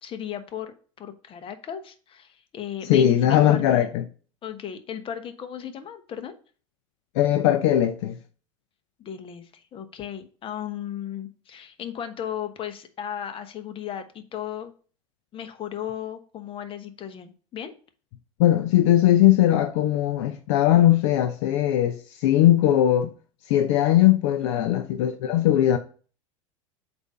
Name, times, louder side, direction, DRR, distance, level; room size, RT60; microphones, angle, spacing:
voice 1, 0.0-3.9 4.4-6.4 9.0-14.7 15.3-17.7 24.6-24.7, left 9 dB, 30° left, 0.9 m, -36 dB
voice 2, 2.9-4.0 7.1-8.2 18.4-23.1 23.5-25.8, left 12 dB, 60° left, 0.6 m, -19 dB
7.9 x 2.7 x 5.5 m
hypercardioid pair, 85°, 17 cm